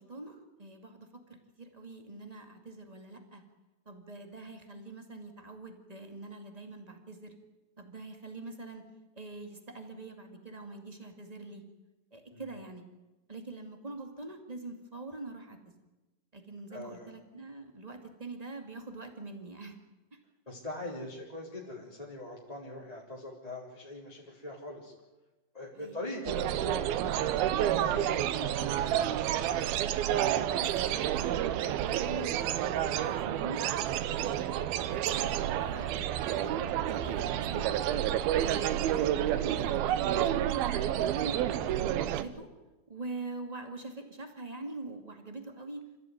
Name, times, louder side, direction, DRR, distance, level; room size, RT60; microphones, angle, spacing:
voice 1, 0.0-3.4 3.8-7.3 7.8-8.8 9.1-11.6 12.1-12.8 13.3-15.7 16.3-19.8 20.1-20.2 25.7-26.0 30.0-30.8 31.1-33.7 34.2-37.7 38.4-41.4 41.7-42.5 42.9-45.9, right 2 dB, 20° right, 5 dB, 1.0 m, -44 dB
voice 2, 16.7-17.1 20.4-24.9 25.5-29.1, left 1 dB, 10° left, -3 dB, 3.2 m, -42 dB
sound 1, 26.3-42.2, right 11 dB, 75° right, 2.6 m, -29 dB
28.0 x 16.0 x 9.4 m, 1.1 s
omnidirectional pair, 5.1 m